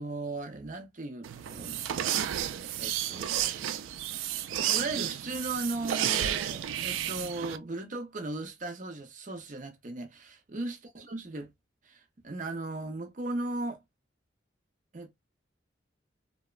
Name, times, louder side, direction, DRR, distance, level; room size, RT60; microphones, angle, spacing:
voice 1, 0.0-2.4 2.7-3.9 4.7-11.5 11.8-13.8 14.9-15.1, right 2 dB, 40° right, 0.6 m, -37 dB
sound 1, 1.2-7.6, right 11 dB, 90° right, 0.3 m, -32 dB
2.9 x 2.1 x 2.3 m
head